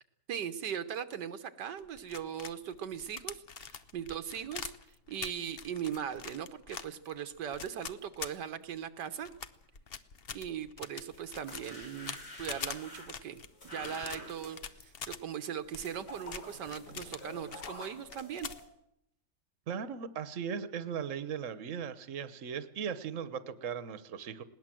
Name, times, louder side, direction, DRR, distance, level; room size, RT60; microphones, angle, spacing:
voice 1, 0.3-4.7 5.1-9.3 10.3-18.5, right 8 dB, 90° right, 9 dB, 1.7 m, -39 dB
sound 1, 1.8-8.8 9.2-15.2 15.6-17.8 18.0-18.7, left 6 dB, 45° left, 0.9 m, -44 dB
sound 2, 11.0-18.6, left 1 dB, 80° left, 6.5 m, -49 dB
voice 2, 19.7-24.4, right 7 dB, 50° right, 13 dB, 1.4 m, -38 dB
20.0 x 18.0 x 7.7 m, 0.77 s
omnidirectional pair, 1.8 m